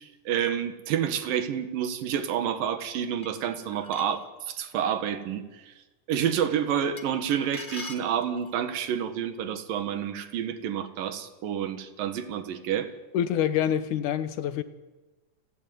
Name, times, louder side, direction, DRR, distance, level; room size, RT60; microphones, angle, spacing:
voice 1, 0.0-5.7 6.1-12.9, right 9 dB, 90° right, 3.2 m, -29 dB
sound 1, 3.2-4.3 7.0-8.6, left 3 dB, 30° left, 0.8 m, -43 dB
voice 2, 13.1-14.6, left 10 dB, 70° left, 2.4 m, -26 dB
29.0 x 13.0 x 9.4 m
omnidirectional pair, 3.8 m